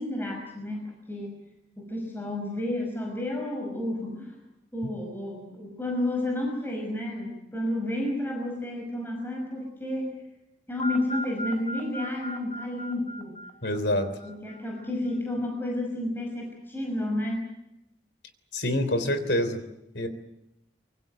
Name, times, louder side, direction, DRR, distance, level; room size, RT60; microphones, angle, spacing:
voice 1, 0.0-1.4 1.8-4.4 4.7-10.2 10.7-13.3 14.2-17.5, left 1 dB, 10° left, 1 dB, 5.7 m, -31 dB
sound 1, 10.8-14.8, equal, 35° left, 1.9 m, -37 dB
voice 2, 13.6-14.1 18.5-19.6 19.9-20.1, left 1 dB, 70° left, 11 dB, 3.3 m, -26 dB
24.5 x 23.5 x 7.9 m, 0.87 s
head